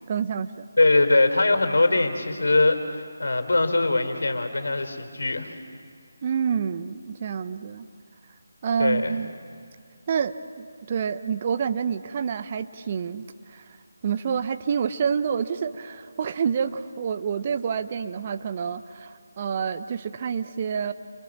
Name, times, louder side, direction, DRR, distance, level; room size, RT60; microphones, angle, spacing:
voice 1, 0.1-0.7 6.2-7.9 8.6-9.3 10.1-13.6 14.0-20.9, right 7 dB, 35° right, 11 dB, 0.9 m, -28 dB
voice 2, 0.8-5.5 8.8-9.2, left 2 dB, 70° left, 8 dB, 3.7 m, -22 dB
29.5 x 27.5 x 7.4 m, 2.1 s
figure-of-eight pair, 155°, 0 cm